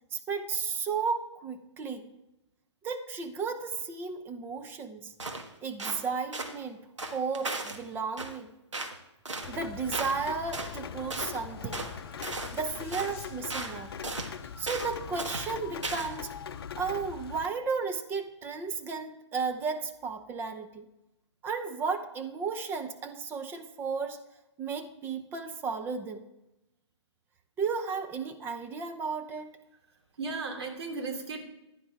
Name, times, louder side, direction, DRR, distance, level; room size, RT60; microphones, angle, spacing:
voice 1, 0.1-2.1 2.8-5.1 5.6-6.9 7.1-8.5 9.5-11.8 12.5-13.9 14.6-16.3 16.8-20.9 21.4-24.2 24.6-26.3 27.6-29.5, right 5 dB, 15° right, 6 dB, 0.8 m, -34 dB
sound 1, 5.2-5.5 5.8-6.0 6.3-6.5 7.0-7.8 8.2-8.4 8.7-9.0 9.2-9.5 9.9-10.2 10.5-10.7 11.1-11.3 11.7-11.9 12.2-12.6 12.9-13.2 13.5-13.8 14.0-14.3 14.7-14.9 15.2-15.5 15.8-16.2, right 3 dB, 80° right, 1.7 m, -36 dB
Rain, 9.4-17.5, left 7 dB, 55° left, 0.7 m, -41 dB
sound 2, 9.6-14.2, left 6 dB, 20° left, 3.7 m, -52 dB
voice 2, 29.8-31.4, right 3 dB, 60° right, 2 dB, 2.9 m, -36 dB
15.0 x 10.5 x 3.5 m, 0.92 s
figure-of-eight pair, 130°, 15 cm